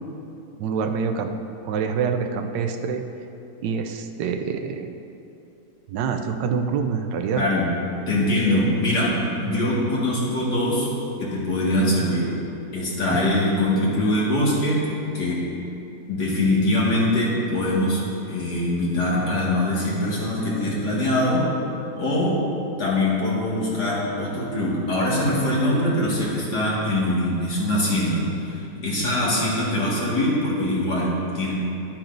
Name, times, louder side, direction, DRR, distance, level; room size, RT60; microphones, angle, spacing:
voice 1, 0.6-1.4 1.6-3.0 3.6-5.0 5.9-7.4 13.1-13.2, right 6 dB, 90° right, 6 dB, 1.3 m, -26 dB
voice 2, 7.4-7.7 8.1-10.9 11.2-12.3 12.7-14.9 15.1-15.4 16.1-18.0 18.3-21.5 22.0-22.4 22.8-31.5, left 1 dB, 65° left, -6 dB, 2.4 m, -23 dB
11.5 x 8.8 x 2.6 m, 2.8 s
omnidirectional pair, 1.9 m